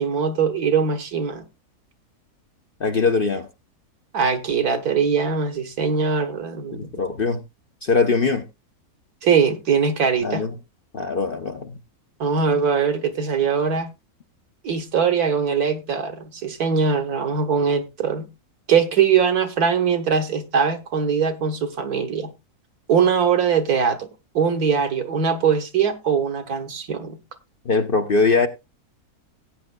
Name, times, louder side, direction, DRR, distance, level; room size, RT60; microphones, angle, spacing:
voice 1, 0.0-1.4 4.1-6.9 9.2-10.4 12.2-13.9 14.6-18.3 18.7-22.3 22.9-24.1 24.3-27.2, right 6 dB, 70° right, 1.9 m, -21 dB
voice 2, 2.8-3.5 6.7-7.4 7.8-8.4 10.2-10.5 10.9-11.7 27.6-28.5, left 4 dB, 45° left, 0.8 m, -21 dB
17.5 x 9.2 x 2.3 m
omnidirectional pair, 1.6 m